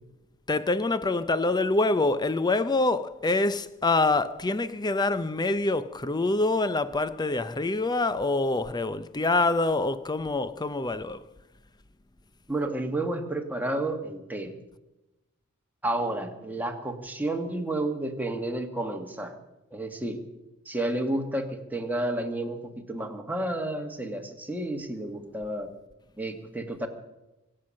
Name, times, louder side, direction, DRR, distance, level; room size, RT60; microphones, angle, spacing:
voice 1, 0.5-11.2, left 2 dB, 20° left, 0.6 m, -25 dB
voice 2, 12.5-14.6 15.8-19.4 19.7-20.2 20.7-22.6 22.9-25.7 26.2-26.9, right 1 dB, 10° right, 1.6 m, -31 dB
24.0 x 8.8 x 6.4 m
head